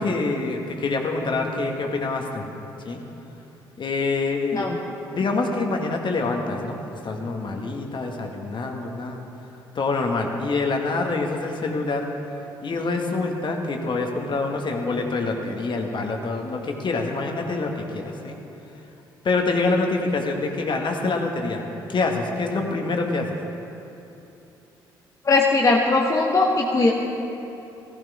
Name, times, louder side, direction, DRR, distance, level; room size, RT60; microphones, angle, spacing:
voice 1, 0.0-2.5 2.9-3.0 3.8-4.7 5.1-9.2 9.8-12.1 12.6-18.4 19.2-21.6 21.9-23.4, left 3 dB, 45° left, 2 dB, 1.8 m, -26 dB
voice 2, 25.2-26.9, left 3 dB, 30° left, -1 dB, 1.2 m, -19 dB
15.5 x 14.5 x 3.6 m, 3.0 s
hypercardioid pair, 45°, 11 cm